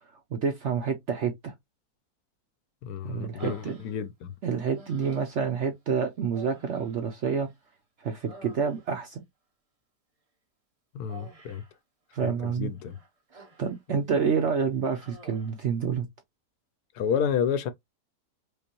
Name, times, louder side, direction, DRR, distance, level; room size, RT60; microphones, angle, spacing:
voice 1, 0.3-1.5 3.0-3.8 4.4-7.5 8.0-9.2 12.1-12.7 13.3-16.1, right 6 dB, 60° right, 0.7 m, -28 dB
voice 2, 2.8-4.3 10.9-11.6 12.2-13.0 16.9-17.7, left 7 dB, 75° left, 1.1 m, -30 dB
Human voice, 3.4-4.3 4.7-5.5 6.3-7.7 8.0-9.1 11.1-11.8 12.8-13.8 14.2-14.4 14.8-15.6, right 2 dB, 25° right, 0.9 m, -50 dB
5.1 x 2.1 x 2.9 m
omnidirectional pair, 1.8 m